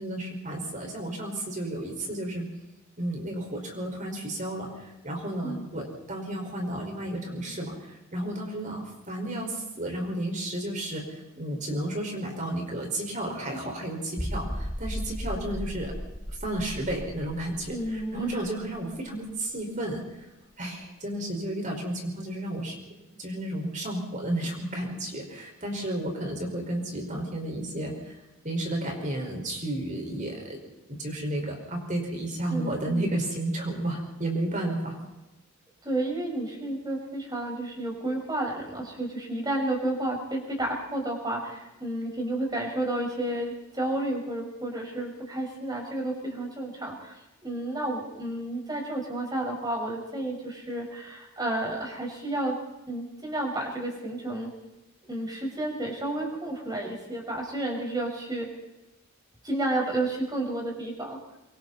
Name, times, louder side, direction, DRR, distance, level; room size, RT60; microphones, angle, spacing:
voice 1, 0.0-2.4 3.0-4.7 5.0-15.9 16.4-20.3 20.6-22.8 23.2-28.2 28.4-30.6 31.0-35.0, right 1 dB, 35° right, 2 dB, 5.2 m, -32 dB
sound 1, 14.2-19.6 19.9-20.0 20.5-20.6, equal, 5° left, 1.0 m, -36 dB
voice 2, 17.7-18.4 32.5-33.1 35.8-52.6 52.9-54.5 55.1-58.5 59.4-61.2, right 1 dB, 20° right, 0 dB, 5.4 m, -31 dB
25.5 x 24.0 x 4.2 m, 0.99 s
head